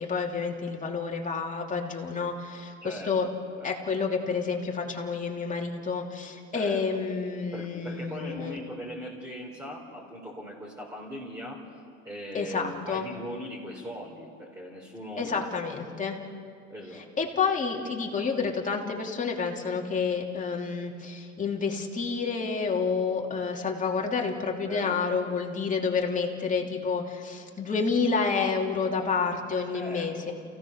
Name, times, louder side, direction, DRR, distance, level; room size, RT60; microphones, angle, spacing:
voice 1, 0.0-3.3 3.6-8.6 12.3-13.0 15.2-16.2 16.9-30.3, left 5 dB, 25° left, 0 dB, 3.1 m, -29 dB
voice 2, 2.8-3.7 6.5-7.0 7.5-11.6 12.0-15.4 16.7-17.1 24.7-25.2 29.7-30.3, equal, 10° right, -4 dB, 4.0 m, -40 dB
29.0 x 17.0 x 6.6 m, 2.4 s
cardioid pair, 105°, 30 cm